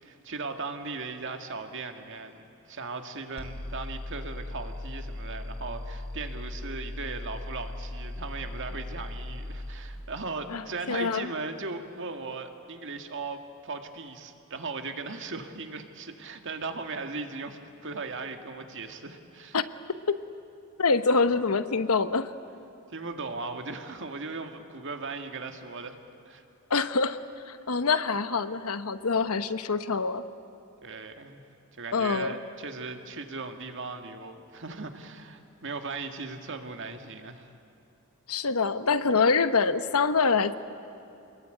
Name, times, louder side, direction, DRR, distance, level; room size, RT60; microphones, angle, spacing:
voice 1, 0.0-19.6 22.9-26.0 26.3-26.4 30.8-31.4 31.7-37.5, right 3 dB, 60° right, 6 dB, 2.0 m, -38 dB
sound 1, 3.4-9.8, left 1 dB, 25° left, 3.0 m, -38 dB
voice 2, 10.5-11.3 19.5-19.7 20.1-20.2 20.8-22.3 26.7-27.2 27.5-30.2 31.9-32.3 38.3-40.5, left 4 dB, 80° left, 12 dB, 1.0 m, -25 dB
28.0 x 21.5 x 9.3 m, 2.8 s
head